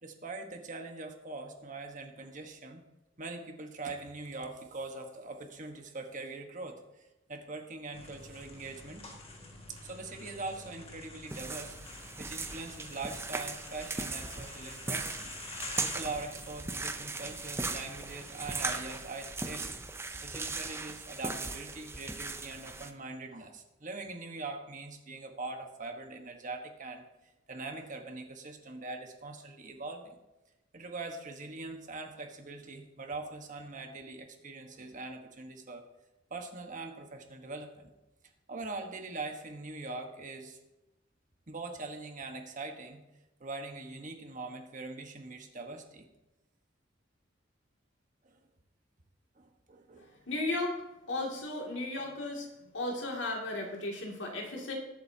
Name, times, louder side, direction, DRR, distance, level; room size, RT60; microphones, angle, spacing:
voice 1, 0.0-2.8 3.2-6.8 7.3-9.1 9.7-15.3 15.8-19.7 20.2-27.0 27.5-30.1 30.7-35.8 36.3-37.9 38.5-40.6 41.5-43.0 43.4-46.1 48.2-48.4 49.4-50.1, right 3 dB, 45° right, 4 dB, 1.3 m, -42 dB
sound 1, 7.9-19.1, left 2 dB, 30° left, 1.9 m, -48 dB
sound 2, 11.3-22.9, right 3 dB, 15° right, 0.6 m, -38 dB
voice 2, 50.3-50.8 51.1-52.5 52.7-54.7, left 2 dB, 70° left, 0 dB, 2.5 m, -35 dB
20.5 x 8.0 x 2.8 m, 0.99 s
head